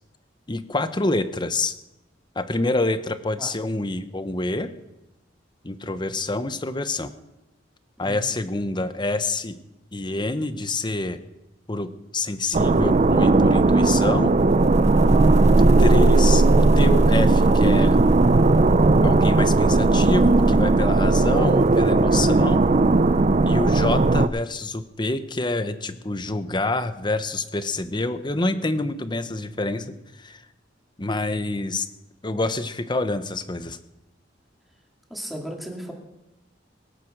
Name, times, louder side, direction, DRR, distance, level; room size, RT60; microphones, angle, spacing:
voice 1, 0.5-1.7 2.3-4.7 5.6-7.1 8.0-9.6 9.9-11.2 11.7-14.3 15.5-18.0 19.0-22.6 23.4-30.4 31.0-31.9 32.2-33.8, left 2 dB, 25° left, 11 dB, 1.0 m, -27 dB
sound 1, 12.5-24.3, right 2 dB, 40° right, 0.5 m, -17 dB
voice 2, 35.1-35.9, equal, ahead, 0 dB, 2.8 m, -35 dB
22.5 x 9.3 x 6.7 m, 0.95 s
head